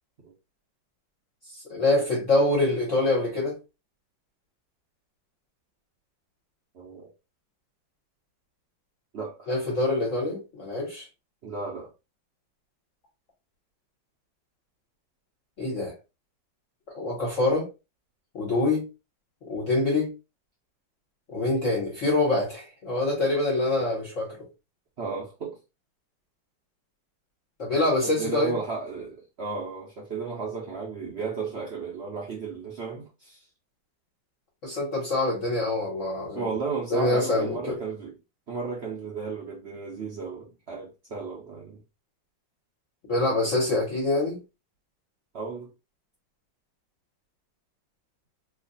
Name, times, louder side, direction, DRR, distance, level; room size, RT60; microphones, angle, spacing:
voice 1, 1.7-3.6 9.5-11.0 15.6-15.9 16.9-17.7 18.3-18.8 19.4-20.1 21.3-24.4 27.6-28.5 34.6-36.5 36.9-37.7 43.1-44.4, left 2 dB, 45° left, 1.3 m, -25 dB
voice 2, 6.7-7.1 9.1-9.5 11.4-11.9 25.0-25.6 28.0-33.4 36.3-38.1 38.5-41.8 45.3-45.7, right 4 dB, 60° right, 0.7 m, -34 dB
3.1 x 2.3 x 3.9 m
omnidirectional pair, 2.0 m